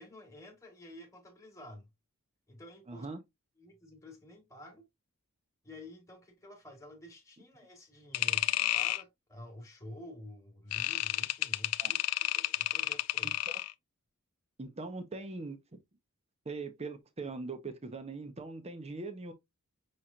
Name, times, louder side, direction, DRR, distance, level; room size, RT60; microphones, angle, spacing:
voice 1, 0.0-1.9 2.5-3.1 3.6-4.8 5.6-12.0 12.3-13.4, left 1 dB, 15° left, 1.5 m, -50 dB
voice 2, 2.9-3.2 11.8-11.9 13.5-13.6 14.6-15.8 16.5-19.3, right 3 dB, 30° right, 0.7 m, -41 dB
sound 1, 8.1-9.0 10.7-13.7, left 16 dB, 75° left, 0.3 m, -31 dB
5.7 x 3.2 x 2.5 m
head